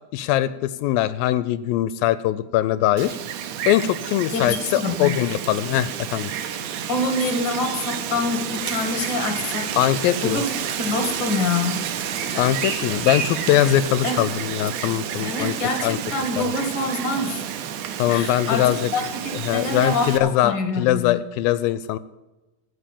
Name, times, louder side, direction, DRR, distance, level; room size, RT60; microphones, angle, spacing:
voice 1, 0.1-3.2 3.7-6.3 9.8-10.4 12.3-15.5 15.8-16.0 16.4-16.5 18.0-18.9 19.3-22.0, left 13 dB, 85° left, 15 dB, 2.3 m, -21 dB
Wind, 3.0-20.2, right 9 dB, 75° right, 2.1 m, -30 dB
voice 2, 4.3-5.2 6.9-10.5 10.8-11.8 14.0-14.3 15.2-17.5 18.1-21.2, left 3 dB, 40° left, 5 dB, 2.1 m, -26 dB
sound 1, 8.5-13.6, right 5 dB, 55° right, 2.6 m, -35 dB
15.5 x 5.5 x 8.5 m, 1.1 s
omnidirectional pair, 4.1 m